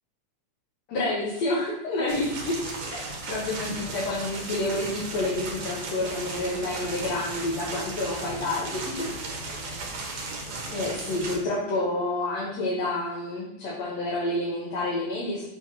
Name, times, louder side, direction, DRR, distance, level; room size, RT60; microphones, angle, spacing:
voice 1, 0.9-2.6 2.9-3.0 3.3-9.1 9.7-9.9 10.7-15.5, left 2 dB, 60° left, -6 dB, 2.5 m, -29 dB
sound 1, 2.1-11.4, right 2 dB, 65° right, 2.4 m, -35 dB
7.2 x 4.0 x 6.0 m, 0.84 s
omnidirectional pair, 3.5 m